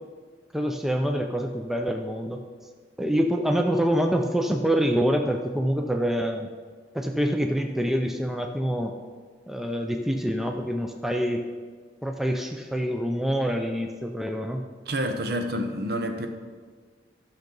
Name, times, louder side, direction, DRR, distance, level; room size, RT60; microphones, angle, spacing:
voice 1, 0.5-2.4 3.0-6.5 6.9-8.9 9.5-11.5 12.0-14.6, equal, ahead, 3 dB, 0.5 m, -26 dB
voice 2, 14.9-16.3, equal, 60° right, 6 dB, 0.9 m, -28 dB
13.0 x 6.5 x 3.9 m, 1.5 s
head